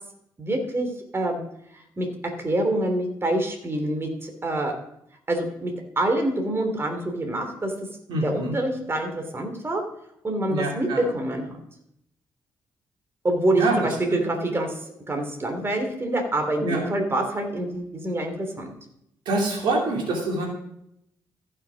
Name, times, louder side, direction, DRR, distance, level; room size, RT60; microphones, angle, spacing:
voice 1, 0.4-0.9 1.1-1.4 1.7-4.7 5.3-7.7 8.2-9.8 10.2-11.6 13.2-14.7 15.1-18.8, right 1 dB, 30° right, 4 dB, 3.0 m, -26 dB
voice 2, 8.1-8.5 10.5-11.0 13.6-14.1 16.6-16.8 19.2-20.5, right 2 dB, 80° right, 0 dB, 2.8 m, -25 dB
14.5 x 6.5 x 5.1 m, 0.75 s
supercardioid pair, 60°, 8 cm